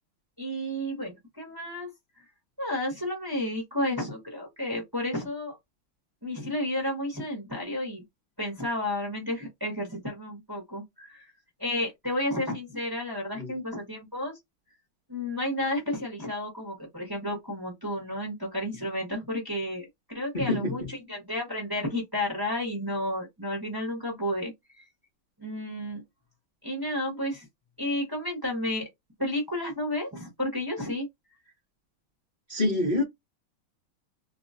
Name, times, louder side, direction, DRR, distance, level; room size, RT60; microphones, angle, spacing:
voice 1, 0.4-1.9 2.6-5.6 6.2-8.0 8.4-11.3 11.6-14.4 15.1-24.8 25.4-26.0 26.6-27.5 27.8-28.9 29.2-31.1, left 1 dB, 15° right, 0.8 m, -32 dB
voice 2, 20.3-20.9 32.5-33.0, left 2 dB, 55° left, 0.5 m, -26 dB
3.1 x 2.8 x 2.6 m
omnidirectional pair, 2.4 m